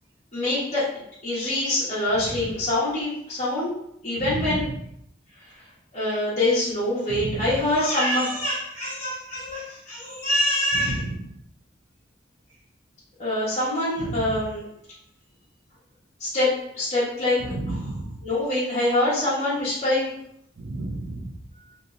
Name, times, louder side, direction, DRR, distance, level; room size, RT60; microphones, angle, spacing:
voice 1, 0.3-0.9 1.2-3.7 4.0-4.7 5.9-11.1 13.2-14.6 16.2-17.7 18.2-20.1, left 1 dB, 40° left, -11 dB, 1.2 m, -25 dB
voice 2, 4.2-4.6 7.1-7.5 10.7-11.2 14.0-14.4 17.4-18.2 20.6-21.4, right 2 dB, 60° right, 3 dB, 0.4 m, -31 dB
2.9 x 2.7 x 2.5 m, 0.72 s
head